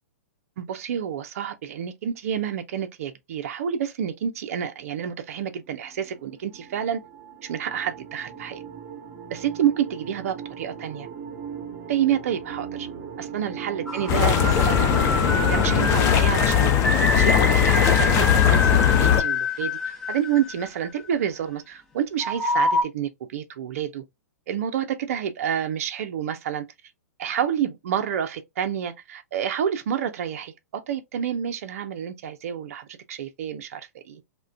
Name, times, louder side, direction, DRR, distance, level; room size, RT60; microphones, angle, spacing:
voice 1, 0.6-7.0 7.4-8.6 9.3-11.1 11.9-12.9 13.2-16.7 17.2-24.0 24.5-26.7 27.2-34.2, right 9 dB, 60° right, 0.5 m, -29 dB
sound 1, 5.3-16.1, right 7 dB, 30° right, 1.1 m, -38 dB
sound 2, 13.9-21.1 22.2-22.8, left 2 dB, 10° left, 0.9 m, -26 dB
sound 3, 14.1-19.2, left 9 dB, 30° left, 0.5 m, -19 dB
2.4 x 2.2 x 3.2 m
hypercardioid pair, 120°, 9 cm